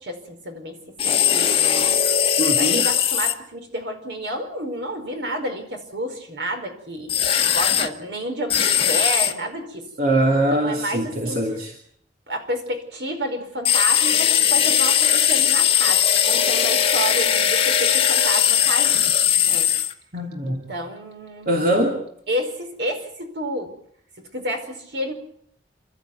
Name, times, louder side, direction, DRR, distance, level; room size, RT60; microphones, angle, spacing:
voice 1, 0.0-2.0 2.6-7.1 7.5-9.9 10.5-11.4 12.3-19.0 19.4-19.7 20.4-21.5 22.3-23.7 24.3-25.1, right 1 dB, 70° right, 5 dB, 4.9 m, -30 dB
sound 1, 1.0-3.3 7.1-7.9 8.5-9.3 13.6-19.9, left 9 dB, 30° left, 1.6 m, -19 dB
voice 2, 2.4-2.9 10.0-11.7 20.1-20.7 21.5-22.0, right 1 dB, 50° right, 1 dB, 3.0 m, -22 dB
29.0 x 13.0 x 9.6 m, 0.68 s
head